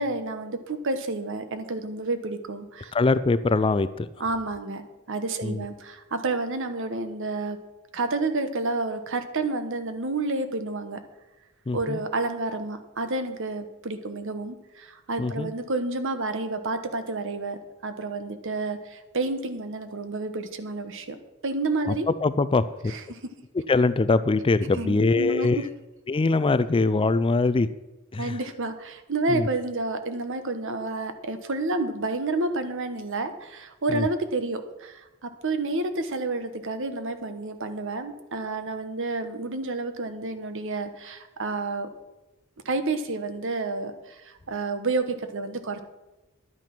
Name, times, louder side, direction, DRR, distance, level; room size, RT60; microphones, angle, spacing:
voice 1, 0.0-2.9 4.2-4.8 5.1-7.6 7.9-11.0 11.7-21.2 21.4-22.1 22.9-23.2 24.7-25.5 28.2-41.9 42.6-45.8, right 3 dB, 60° right, 9 dB, 1.2 m, -30 dB
voice 2, 2.9-4.1 5.4-5.6 11.7-12.0 15.2-15.5 21.9-22.0 22.2-22.9 23.7-25.6 26.1-27.7 28.1-28.4 29.3-29.5 33.9-34.1, left 3 dB, 25° left, 14 dB, 0.4 m, -23 dB
11.0 x 9.0 x 6.0 m, 1.1 s
head